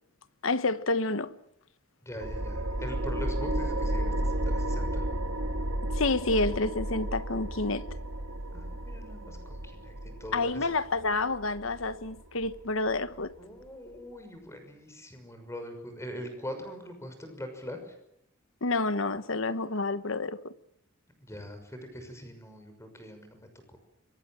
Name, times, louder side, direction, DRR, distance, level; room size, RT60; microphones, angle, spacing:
voice 1, 0.4-1.4 5.9-7.9 10.3-13.3 18.6-20.5, left 3 dB, 70° left, 1.3 m, -29 dB
voice 2, 2.0-5.1 8.5-10.7 13.4-18.0 21.2-23.8, equal, 15° left, 6.1 m, -42 dB
sound 1, 2.2-13.3, right 1 dB, 85° right, 2.1 m, -33 dB
26.0 x 23.5 x 7.5 m
head